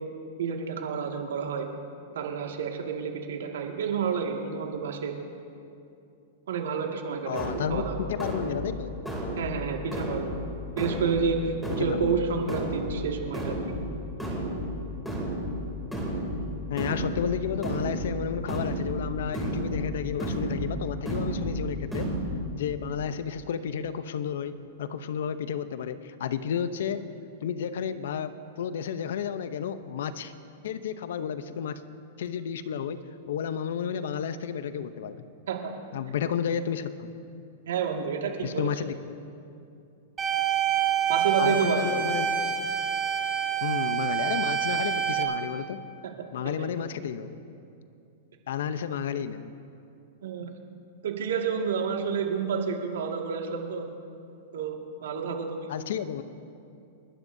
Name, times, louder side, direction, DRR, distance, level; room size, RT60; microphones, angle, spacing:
voice 1, 0.4-1.7 2.1-5.1 6.5-8.1 9.4-10.3 10.8-13.6 35.5-35.7 37.7-38.7 41.1-42.0 46.0-46.1 46.6-46.7 50.2-50.5 51.0-53.9 54.5-55.7, right 6 dB, 85° right, 2 dB, 2.0 m, -30 dB
voice 2, 7.3-8.9 11.7-12.2 16.7-22.1 22.5-27.1 27.4-30.3 30.6-31.8 32.2-33.0 33.3-35.3 35.9-37.1 38.4-39.1 41.4-42.6 43.6-45.8 46.3-47.4 48.5-49.5 55.7-56.2, left 8 dB, 75° left, 12 dB, 0.7 m, -32 dB
sound 1, 7.3-22.3, equal, ahead, 2.8 m, -33 dB
sound 2, 40.2-45.2, right 9 dB, 20° right, 2.3 m, -27 dB
30.0 x 12.0 x 2.7 m, 2.6 s
hypercardioid pair, 145°, 0 cm